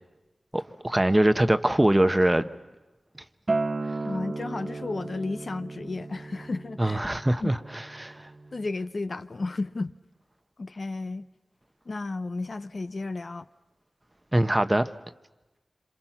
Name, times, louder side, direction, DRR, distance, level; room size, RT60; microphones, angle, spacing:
voice 1, 0.5-2.5 6.8-8.3 14.3-14.9, right 1 dB, 15° right, 0.9 m, -23 dB
Acoustic guitar, 3.5-8.7, right 3 dB, 40° right, 1.0 m, -34 dB
voice 2, 4.0-7.0 7.4-7.5 8.5-9.9 10.6-11.3 11.9-13.5, left 3 dB, 55° left, 0.7 m, -33 dB
27.5 x 27.0 x 5.9 m
wide cardioid pair, 90°, 0 cm